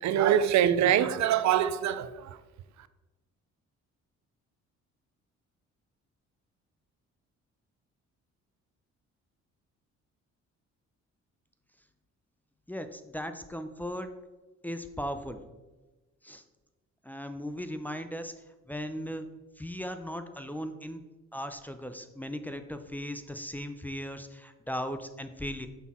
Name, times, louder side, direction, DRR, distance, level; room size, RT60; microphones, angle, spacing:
voice 1, 0.0-2.4, right 10 dB, 70° right, 14 dB, 0.5 m, -24 dB
voice 2, 12.7-14.1 14.6-15.4 16.2-16.4 17.1-18.3 18.7-19.2 19.6-21.0 21.3-25.7, equal, 5° left, 7 dB, 0.5 m, -37 dB
6.3 x 5.6 x 4.2 m, 1.2 s
cardioid pair, 100°, 30 cm